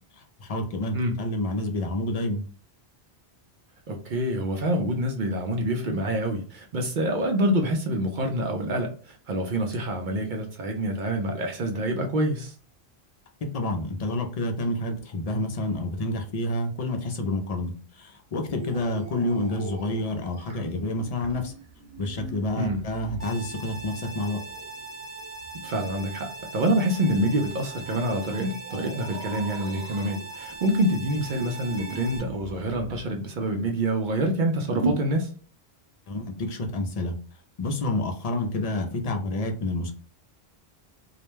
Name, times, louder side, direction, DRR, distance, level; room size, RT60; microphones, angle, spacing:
voice 1, 0.2-2.4 13.5-21.5 22.0-24.4 36.1-37.2 37.6-39.9, left 1 dB, 50° left, 0.5 m, -29 dB
voice 2, 3.9-12.5 22.5-22.8 25.6-35.3, right 1 dB, 60° right, 0.6 m, -26 dB
sound 1, 18.4-33.0, right 4 dB, 90° right, 0.9 m, -44 dB
sound 2, 23.2-32.2, right 3 dB, 20° right, 0.9 m, -40 dB
2.3 x 2.1 x 3.0 m
omnidirectional pair, 1.1 m